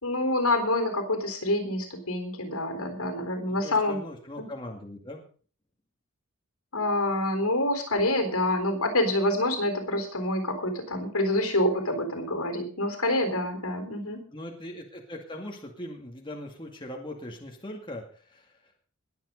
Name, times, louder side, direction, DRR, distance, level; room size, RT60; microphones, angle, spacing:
voice 1, 0.0-4.0 4.4-4.5 6.7-14.2, left 1 dB, 75° left, 6 dB, 3.8 m, -27 dB
voice 2, 3.5-5.2 14.3-18.5, left 1 dB, 20° left, 1 dB, 2.2 m, -40 dB
21.5 x 7.6 x 5.4 m, 0.42 s
head